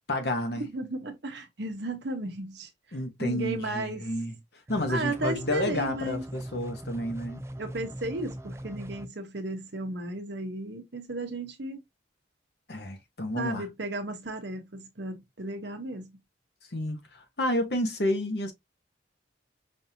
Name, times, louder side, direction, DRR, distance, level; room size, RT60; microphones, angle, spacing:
voice 1, 0.1-0.7 2.9-4.4 4.7-7.4 12.7-13.7 16.7-18.5, left 1 dB, 55° left, 1.0 m, -30 dB
voice 2, 0.7-2.7 3.2-4.1 4.9-6.2 7.6-11.8 13.4-16.1, right 2 dB, 65° right, 0.9 m, -34 dB
sound 1, 4.7-9.1, right 1 dB, 15° right, 0.4 m, -40 dB
5.3 x 2.7 x 2.7 m
head